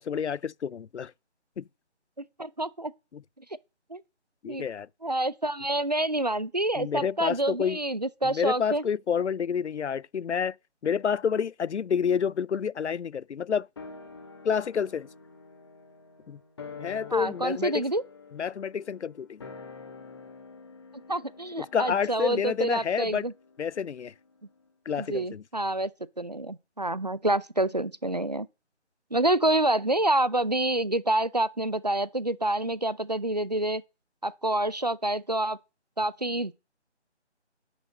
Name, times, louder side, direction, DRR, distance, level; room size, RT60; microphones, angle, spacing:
voice 1, 0.1-1.1 1.6-1.7 3.1-3.2 4.4-4.9 6.8-7.8 8.2-10.6 10.8-13.7 14.4-15.1 16.3-16.4 16.8-17.8 18.3-19.4 21.7-23.2 23.6-24.1 24.9-25.4, left 7 dB, 75° left, 0.5 m, -29 dB
voice 2, 2.4-2.9 3.4-3.5 3.9-4.0 4.5-4.6 5.0-8.8 17.1-18.0 21.1-23.3 25.0-25.9 26.2-28.5 29.1-33.8 34.2-35.6 36.0-36.5, right 1 dB, 35° right, 0.5 m, -27 dB
sound 1, 13.8-24.4 24.6-24.7, left 5 dB, 25° left, 1.4 m, -48 dB
10.5 x 6.3 x 7.2 m
figure-of-eight pair, 165°, 35 cm